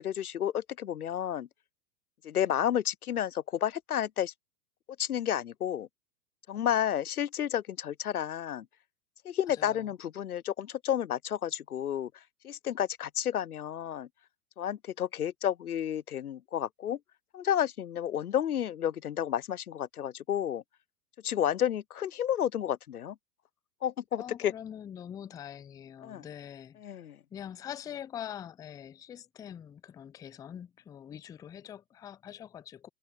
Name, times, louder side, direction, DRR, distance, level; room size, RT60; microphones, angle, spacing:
voice 1, 0.0-1.5 2.2-4.3 5.0-5.9 6.5-8.7 9.2-14.1 14.6-17.0 17.3-20.6 21.2-23.2 23.8-24.5 26.0-26.3 26.8-27.2, left 10 dB, 85° left, 0.6 m, -31 dB
voice 2, 24.2-27.0 27.3-32.9, left 9 dB, 10° left, 0.4 m, -44 dB
figure-of-eight pair, 100°, 43 cm